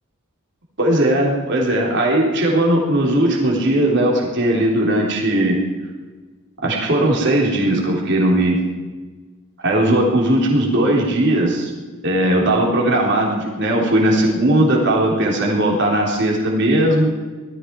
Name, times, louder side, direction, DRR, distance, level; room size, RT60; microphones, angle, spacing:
voice 1, 0.8-5.6 6.6-8.6 9.6-11.7 12.0-17.1, right 1 dB, 55° right, -2 dB, 3.8 m, -18 dB
19.0 x 14.0 x 4.8 m, 1.3 s
head